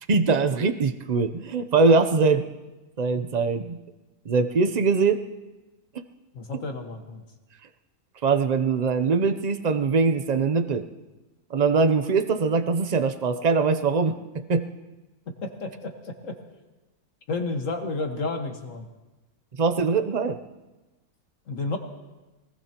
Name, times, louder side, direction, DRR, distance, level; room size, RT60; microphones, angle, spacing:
voice 1, 0.1-2.5 3.0-3.8 4.3-5.2 6.0-6.1 6.5-6.6 8.2-10.8 11.5-14.7 19.6-20.4, right 4 dB, 45° right, 10 dB, 0.6 m, -22 dB
voice 2, 6.4-7.2 15.4-16.3 17.3-18.8 21.5-21.8, left 3 dB, 55° left, 4 dB, 1.9 m, -31 dB
24.0 x 19.0 x 2.9 m, 1.1 s
omnidirectional pair, 1.6 m